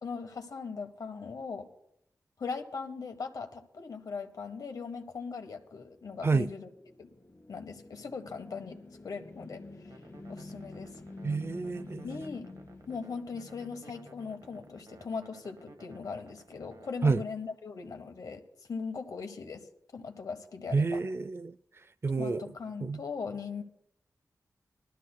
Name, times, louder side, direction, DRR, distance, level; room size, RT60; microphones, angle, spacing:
voice 1, 0.0-1.7 2.4-6.7 7.0-7.1 7.5-8.8 9.0-9.6 10.3-11.0 12.0-12.5 12.9-18.4 18.7-19.6 19.9-21.0 22.2-23.6, left 5 dB, 75° left, 1.2 m, -39 dB
sound 1, 6.1-15.3, left 2 dB, 45° left, 1.1 m, -49 dB
sound 2, 9.9-17.3, right 2 dB, 65° right, 1.0 m, -56 dB
voice 2, 11.2-12.2 17.0-17.2 20.7-21.6 22.0-22.5 22.8-23.0, right 4 dB, 40° right, 0.4 m, -29 dB
21.0 x 12.5 x 2.2 m
cardioid pair, 60°, 6 cm